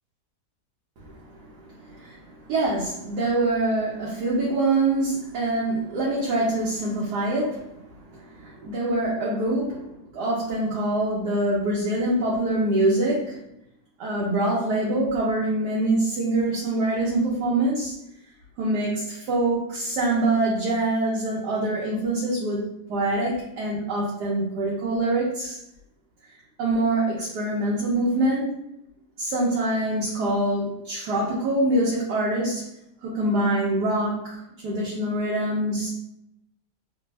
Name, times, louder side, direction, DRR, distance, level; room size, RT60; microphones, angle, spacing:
voice 1, 1.0-13.4 14.0-17.9 18.6-25.6 26.6-28.7 29.2-32.7 33.0-36.0, right 2 dB, 80° right, -5 dB, 1.3 m, -25 dB
3.3 x 2.1 x 3.1 m, 0.81 s
omnidirectional pair, 1.7 m